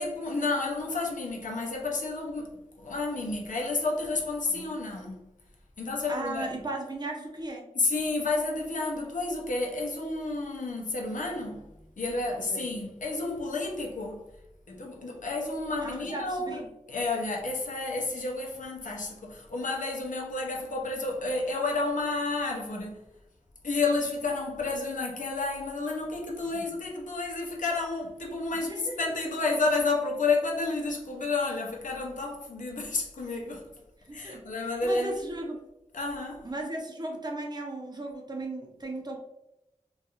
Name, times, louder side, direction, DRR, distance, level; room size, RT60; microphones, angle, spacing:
voice 1, 0.0-5.3 5.8-6.5 7.7-14.3 14.7-16.6 16.9-23.1 23.6-33.8 34.1-35.1 35.9-36.5, left 3 dB, 90° left, 0.5 m, -31 dB
voice 2, 6.1-7.7 12.3-12.7 15.8-16.7 26.5-26.8 28.5-29.1 34.0-34.5 34.8-35.6 36.4-39.2, right 2 dB, 35° right, 0.6 m, -37 dB
2.8 x 2.3 x 2.3 m
wide cardioid pair, 45°, 13 cm